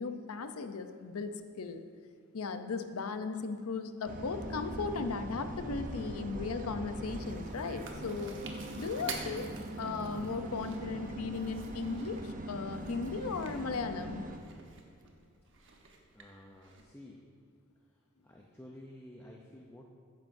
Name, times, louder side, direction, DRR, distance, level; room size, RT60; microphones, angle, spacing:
voice 1, 0.0-1.8 2.3-8.4 8.8-9.5 9.8-14.2, left 4 dB, 85° left, 8 dB, 0.6 m, -37 dB
sound 1, 4.1-14.4, right 1 dB, 40° right, 0.7 m, -41 dB
Chewing mastication, 7.1-16.8, right 5 dB, 60° right, 1.1 m, -50 dB
voice 2, 16.1-17.2 17.8-17.9 18.2-19.8, left 1 dB, 10° left, -1 dB, 0.6 m, -52 dB
13.0 x 9.3 x 2.6 m, 2.3 s
head